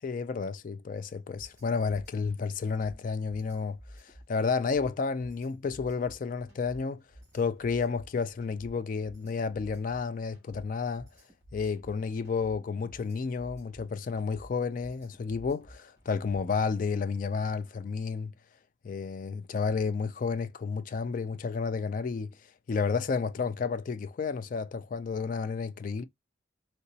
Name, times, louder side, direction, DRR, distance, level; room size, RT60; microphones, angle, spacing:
voice 1, 0.0-3.8 4.0-7.0 7.3-11.1 11.5-18.3 18.8-22.3 22.7-26.0, left 5 dB, 40° left, 0.3 m, -31 dB
sound 1, 1.3-16.6, equal, 15° right, 1.5 m, -52 dB
3.8 x 2.2 x 2.7 m
head